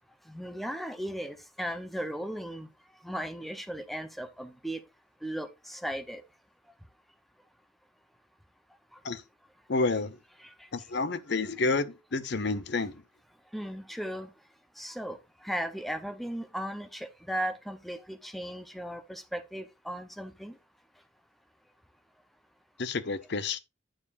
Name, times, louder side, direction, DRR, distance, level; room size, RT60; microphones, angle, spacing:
voice 1, 0.3-2.7 3.0-4.8 5.2-6.2 10.4-10.5 13.5-14.3 14.8-15.2 15.4-20.5, equal, ahead, 0.7 m, -36 dB
voice 2, 9.7-10.2 10.7-13.0 22.8-23.6, left 3 dB, 55° left, 0.7 m, -29 dB
9.0 x 7.2 x 2.5 m
head